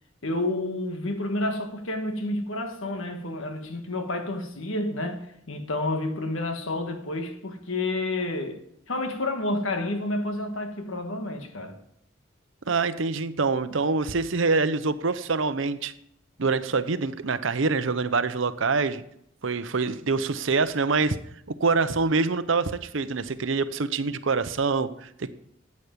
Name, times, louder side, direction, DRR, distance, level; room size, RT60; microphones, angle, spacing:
voice 1, 0.2-11.8, left 2 dB, 85° left, 1.5 m, -30 dB
voice 2, 12.7-15.9 16.4-19.0 19.4-21.2 21.5-25.3, right 4 dB, 75° right, 0.8 m, -25 dB
14.0 x 8.4 x 5.2 m
head